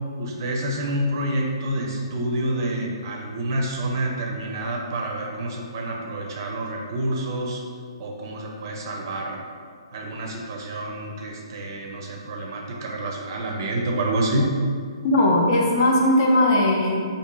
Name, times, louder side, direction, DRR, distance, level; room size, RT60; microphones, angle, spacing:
voice 1, 0.2-7.6 8.0-9.4 9.9-14.5, right 1 dB, 45° right, 0 dB, 0.5 m, -28 dB
voice 2, 15.0-17.0, left 1 dB, 40° left, -1 dB, 0.6 m, -18 dB
4.5 x 2.6 x 2.3 m, 2.1 s
figure-of-eight pair, 130°, 3 cm